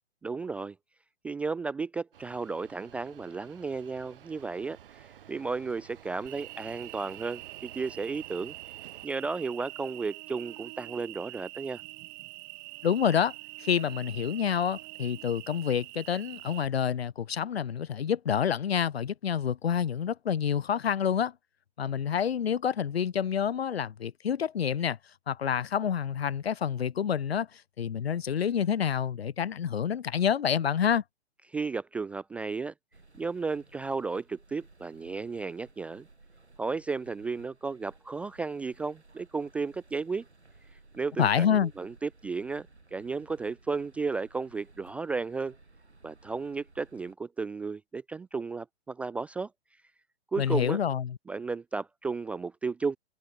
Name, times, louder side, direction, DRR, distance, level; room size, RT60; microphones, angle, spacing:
voice 1, 0.2-0.8 1.2-8.6 9.0-11.8 31.5-32.7 33.2-36.1 36.6-40.3 40.9-45.6 46.0-49.5 50.3-50.8 51.3-53.0, right 4 dB, 5° right, 0.4 m, -34 dB
sound 1, 2.1-9.1, right 10 dB, 55° right, 3.6 m, -52 dB
Cricket, 6.3-16.7, right 27 dB, 30° right, 5.0 m, -45 dB
voice 2, 12.8-13.3 13.6-21.3 21.8-25.0 25.3-31.0 41.2-41.7 50.4-51.2, left 8 dB, 70° left, 1.1 m, -28 dB
sound 2, 32.9-47.1, right 3 dB, 90° right, 5.3 m, -58 dB
figure-of-eight pair, 120°, 32 cm